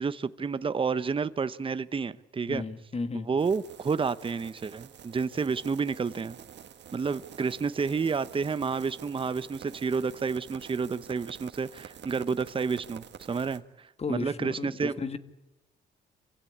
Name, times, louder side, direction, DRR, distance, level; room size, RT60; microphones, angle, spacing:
voice 1, 0.0-2.6 3.3-6.4 6.9-14.9, right 5 dB, 25° right, 14 dB, 0.8 m, -30 dB
voice 2, 2.5-3.3 14.0-15.2, left 4 dB, 30° left, 11 dB, 1.7 m, -34 dB
sound 1, 3.4-13.6, right 9 dB, 60° right, 1.5 m, -48 dB
26.5 x 16.0 x 9.9 m, 1.0 s
cardioid pair, 90°, 20 cm